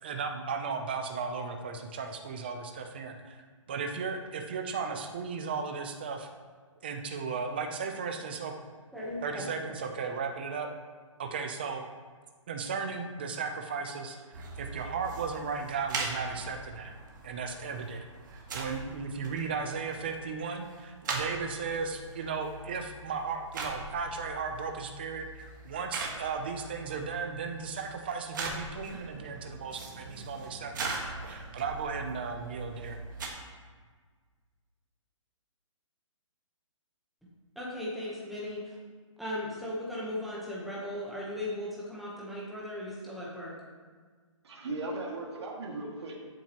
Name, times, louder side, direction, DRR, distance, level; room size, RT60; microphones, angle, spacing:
voice 1, 0.0-6.3 6.8-8.5 9.2-10.7 11.2-11.8 12.5-14.2 14.6-16.9 17.2-18.0 18.5-33.0, right 5 dB, 20° right, 5 dB, 0.5 m, -35 dB
voice 2, 8.9-9.7 37.6-38.6 39.2-43.5, left 1 dB, ahead, -7 dB, 0.9 m, -37 dB
sound 1, 14.3-33.3, right 3 dB, 35° right, 1.4 m, -41 dB
voice 3, 44.4-46.2, right 2 dB, 55° right, -1 dB, 2.1 m, -37 dB
13.0 x 7.4 x 3.0 m, 1.5 s
hypercardioid pair, 175°, 17 cm